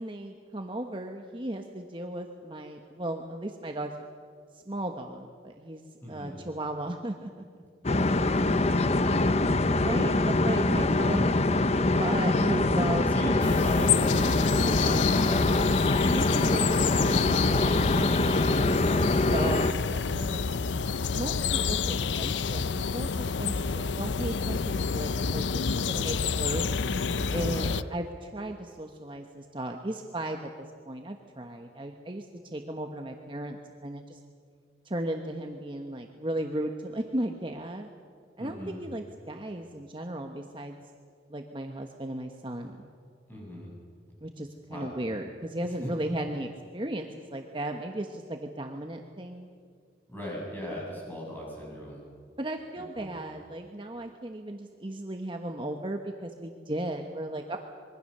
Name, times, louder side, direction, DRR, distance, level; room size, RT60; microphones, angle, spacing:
voice 1, 0.0-3.9 4.7-5.8 6.1-7.3 9.8-11.3 12.0-13.1 16.0-18.7 19.3-20.6 21.1-26.8 27.3-32.3 32.5-34.2 34.8-37.9 38.4-40.8 41.3-42.9 44.2-49.5 52.4-57.6, right 1 dB, 30° right, 3 dB, 1.2 m, -35 dB
voice 2, 6.0-6.4 8.2-9.3 13.1-15.4 25.7-26.0 27.5-27.7 38.4-38.8 43.3-43.7 44.7-44.9 50.1-52.0 53.0-53.2, equal, 10° left, -4 dB, 7.9 m, -38 dB
sound 1, 7.8-19.7, left 2 dB, 35° left, 0.8 m, -24 dB
sound 2, 13.4-27.8, left 5 dB, 90° left, 0.6 m, -29 dB
25.5 x 23.0 x 6.8 m, 2.1 s
head